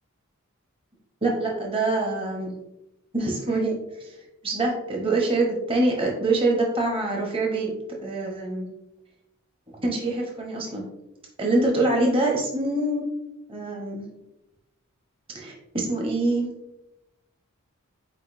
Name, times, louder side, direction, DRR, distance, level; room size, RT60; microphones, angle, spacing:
voice 1, 1.2-2.5 3.1-4.1 4.4-7.7 8.0-8.7 9.7-10.9 11.4-13.1 13.5-14.1 15.3-16.5, right 2 dB, 25° right, -1 dB, 0.8 m, -25 dB
4.9 x 4.1 x 2.5 m, 0.91 s
head